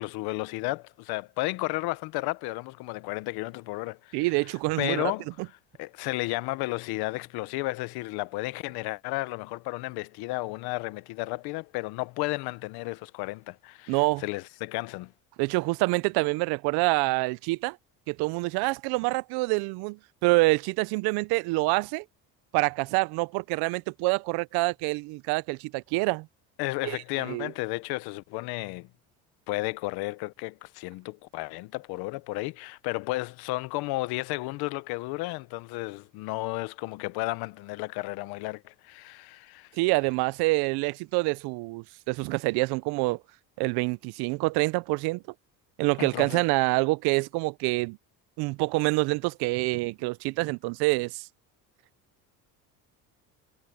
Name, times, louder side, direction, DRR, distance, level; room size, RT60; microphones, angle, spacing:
voice 1, 0.0-4.3 4.8-5.3 5.8-15.1 26.6-28.9 29.5-39.7 46.0-46.4, left 21 dB, 80° left, 1.0 m, -33 dB
voice 2, 4.1-5.1 13.9-14.2 15.4-17.8 18.1-22.0 22.5-26.3 26.8-27.0 27.2-27.5 39.8-43.2 43.6-45.2 45.8-48.0 48.4-51.3, right 25 dB, 80° right, 0.6 m, -26 dB
cardioid pair, 100°, 38 cm